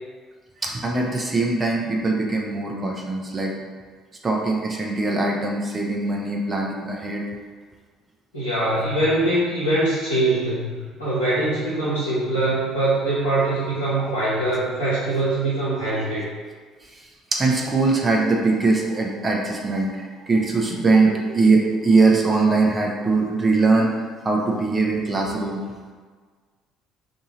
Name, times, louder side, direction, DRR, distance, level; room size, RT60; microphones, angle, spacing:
voice 1, 0.6-3.5 4.2-7.3 14.0-14.1 17.3-25.6, right 3 dB, 25° right, 0 dB, 0.6 m, -21 dB
voice 2, 8.3-16.3 20.7-20.9, right 2 dB, 90° left, -12 dB, 0.9 m, -23 dB
2.7 x 2.7 x 4.1 m, 1.5 s
hypercardioid pair, 55°, 0 cm